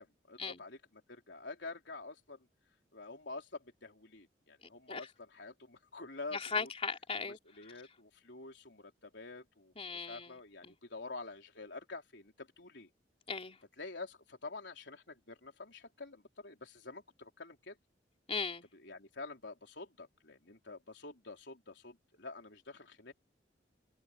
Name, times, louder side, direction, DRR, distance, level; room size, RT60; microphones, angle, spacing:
voice 1, 0.0-2.5 2.9-6.7 7.2-12.9 13.8-17.8 18.7-23.1, left 3 dB, 70° left, 4.5 m, -48 dB
voice 2, 6.3-7.4 9.8-10.3 10.7-10.8 13.3-13.6 18.3-18.7, left 5 dB, 35° left, 3.6 m, -37 dB
head